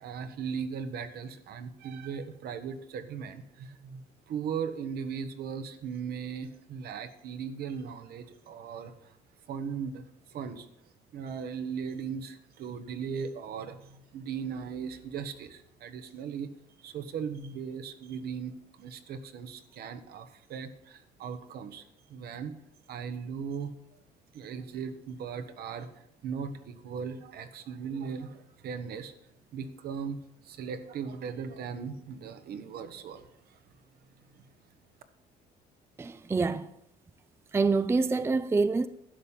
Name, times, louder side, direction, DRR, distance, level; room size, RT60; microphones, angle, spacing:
voice 1, 0.0-9.1 9.5-10.0 10.3-10.7 11.1-16.5 16.8-22.5 22.9-23.7 24.3-25.9 26.2-29.1 29.5-30.2 30.4-33.6 34.3-34.5, right 6 dB, 65° right, 1.3 m, -38 dB
voice 2, 36.0-36.7 37.5-38.9, right 4 dB, 15° right, 0.4 m, -26 dB
12.0 x 5.6 x 8.6 m
cardioid pair, 110°, 17 cm